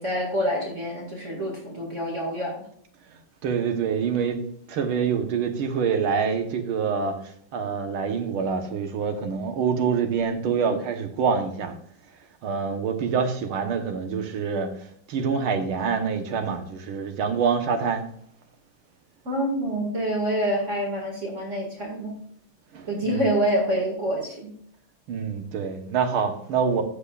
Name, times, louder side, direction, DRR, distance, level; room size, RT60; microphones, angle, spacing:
voice 1, 0.0-2.5 19.2-22.1 22.9-24.5, right 1 dB, 35° right, 2.3 m, -26 dB
voice 2, 3.4-7.1 7.5-11.8 12.4-14.7 15.1-18.1 22.7-23.2 25.1-26.8, right 6 dB, 90° right, 2.0 m, -26 dB
13.5 x 7.6 x 2.4 m
omnidirectional pair, 2.2 m